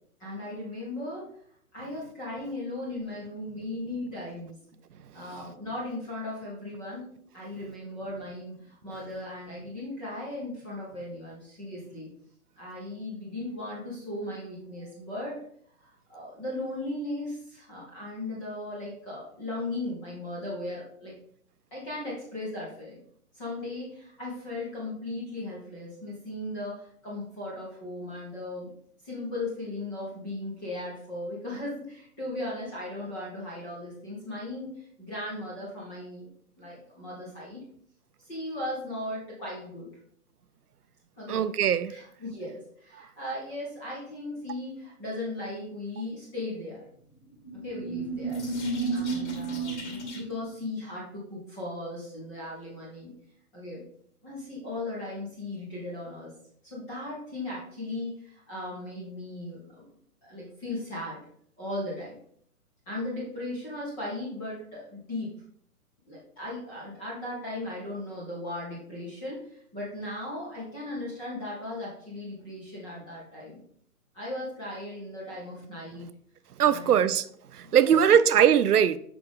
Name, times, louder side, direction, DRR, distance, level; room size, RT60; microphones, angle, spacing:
voice 1, 0.2-1.3 1.7-4.6 5.1-12.1 12.6-15.4 15.8-21.2 21.7-23.0 23.3-28.7 29.0-36.3 36.6-37.6 38.2-39.9 41.2-41.5 41.9-46.8 47.5-48.4 48.7-53.1 53.5-53.8 54.2-56.3 56.6-59.9 60.2-61.2 61.6-62.1 62.9-65.4 66.1-73.6 74.1-76.1 76.6-77.0 77.6-78.1, left 1 dB, 5° left, 0.5 m, -37 dB
voice 2, 41.3-41.9 76.6-77.3 77.6-79.0, right 9 dB, 75° right, 0.6 m, -21 dB
sound 1, 47.2-50.5, right 3 dB, 50° left, 1.8 m, -32 dB
5.8 x 5.0 x 3.5 m
figure-of-eight pair, 135°, 46 cm